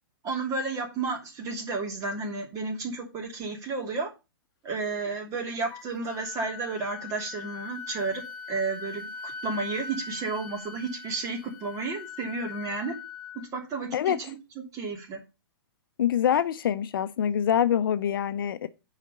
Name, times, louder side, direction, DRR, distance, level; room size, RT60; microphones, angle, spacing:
voice 1, 0.2-4.1 4.6-8.2 8.5-12.9 13.3-15.2, right 4 dB, 25° right, 2.8 m, -32 dB
Wind instrument woodwind instrument, 5.7-13.4, left 5 dB, 35° left, 1.1 m, -41 dB
voice 2, 16.0-18.7, left 9 dB, 70° left, 0.7 m, -25 dB
7.3 x 5.0 x 6.7 m
hypercardioid pair, 130°, 12 cm